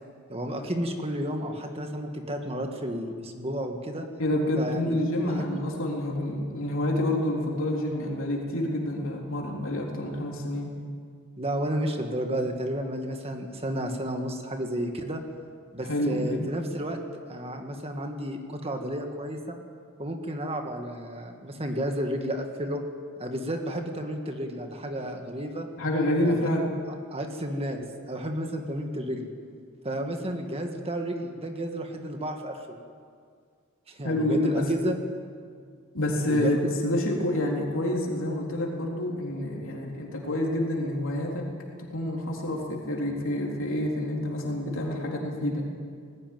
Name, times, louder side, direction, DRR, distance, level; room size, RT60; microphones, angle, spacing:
voice 1, 0.3-4.1 4.6-5.0 5.2-5.5 11.4-15.2 15.7-17.0 17.3-19.6 20.0-22.8 23.2-25.7 26.3-26.5 27.1-29.3 29.8-32.8 33.9-35.0 36.2-36.6, right 1 dB, 25° right, 4 dB, 1.8 m, -32 dB
voice 2, 4.2-10.7 15.8-16.5 25.8-26.7 34.0-34.7 35.9-41.5 41.9-45.7, left 1 dB, 65° left, -1 dB, 3.9 m, -28 dB
20.0 x 16.0 x 9.3 m, 2.1 s
head